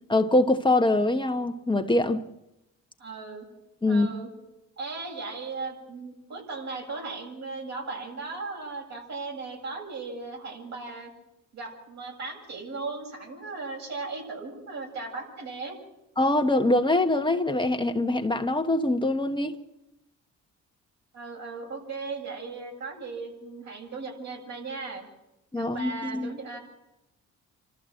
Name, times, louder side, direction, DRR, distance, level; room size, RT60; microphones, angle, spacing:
voice 1, 0.1-2.2 3.8-4.1 16.2-19.5 25.5-26.3, left 2 dB, 15° left, 1.3 m, -24 dB
voice 2, 3.0-3.5 3.9-4.3 4.8-11.1 11.5-15.8 21.1-25.0 25.5-26.6, right 3 dB, 65° right, 7.8 m, -37 dB
28.5 x 13.5 x 7.7 m
cardioid pair, 90°, 30 cm